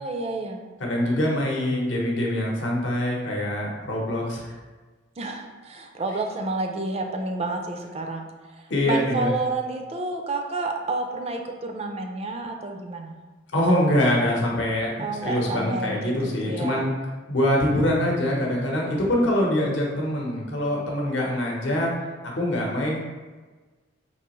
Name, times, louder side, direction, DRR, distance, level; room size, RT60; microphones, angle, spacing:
voice 1, 0.0-0.6 5.2-13.2 15.0-16.9, right 3 dB, 30° right, 3 dB, 0.4 m, -30 dB
voice 2, 0.8-4.5 8.7-9.3 13.5-16.9 17.3-21.9 22.2-23.0, left 1 dB, 65° left, -2 dB, 0.8 m, -24 dB
4.6 x 2.8 x 3.0 m, 1.3 s
head